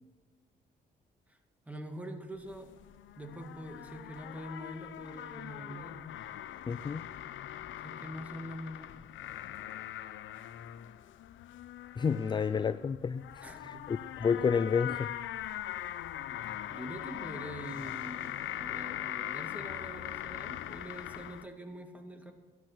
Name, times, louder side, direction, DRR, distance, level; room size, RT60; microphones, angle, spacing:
voice 1, 1.7-2.7 3.2-6.0 7.8-9.0 13.4-13.9 16.7-22.3, equal, 5° right, 5 dB, 2.0 m, -44 dB
sound 1, 2.4-21.4, left 12 dB, 75° left, 0.7 m, -41 dB
voice 2, 6.7-7.1 12.0-15.1, left 6 dB, 25° left, 15 dB, 0.3 m, -30 dB
12.5 x 11.0 x 6.0 m, 1.4 s
cardioid pair, 90°, 20 cm